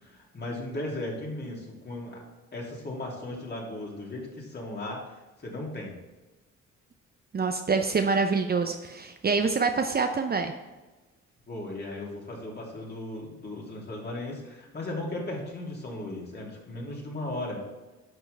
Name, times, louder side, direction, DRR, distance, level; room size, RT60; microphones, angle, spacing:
voice 1, 0.0-2.2 2.5-6.0 11.5-17.6, left 1 dB, 35° left, -2 dB, 2.8 m, -36 dB
voice 2, 7.3-10.5, right 4 dB, 30° right, 5 dB, 0.7 m, -26 dB
11.0 x 6.0 x 3.4 m, 1.1 s
cardioid pair, 90°, 30 cm